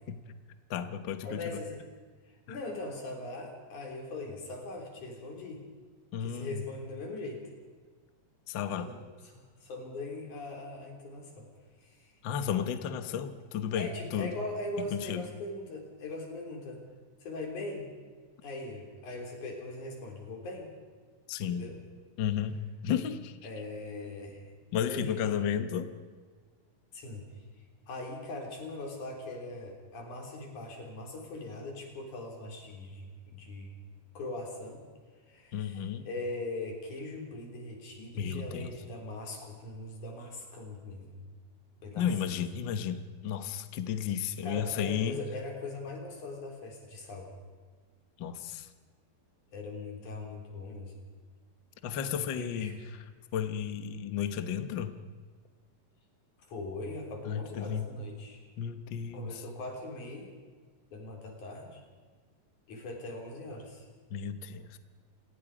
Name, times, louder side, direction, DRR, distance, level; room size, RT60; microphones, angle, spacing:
voice 1, 0.7-1.6 2.5-2.6 6.1-6.6 8.5-8.9 12.2-14.3 14.8-15.2 21.3-21.7 22.2-22.6 22.8-23.4 24.7-25.9 35.5-36.1 38.2-38.7 42.0-45.2 48.2-48.7 51.8-53.0 53.3-55.0 57.3-57.9 58.6-59.4 64.1-64.8, left 8 dB, 80° left, 9 dB, 1.0 m, -33 dB
voice 2, 1.2-1.9 2.5-5.6 6.2-7.4 8.8-9.0 9.3-11.5 11.8-12.1 13.7-16.8 17.2-17.8 18.4-20.7 21.5-21.8 23.4-24.5 24.9-25.4 26.9-27.2 27.9-33.7 34.2-34.8 35.3-41.2 41.8-42.1 44.4-47.3 49.5-50.9 52.3-52.7 56.5-58.4 59.1-60.3 60.9-61.8 62.7-63.9, left 2 dB, 60° left, 1 dB, 5.1 m, -40 dB
28.5 x 18.5 x 5.1 m, 1.5 s
omnidirectional pair, 4.0 m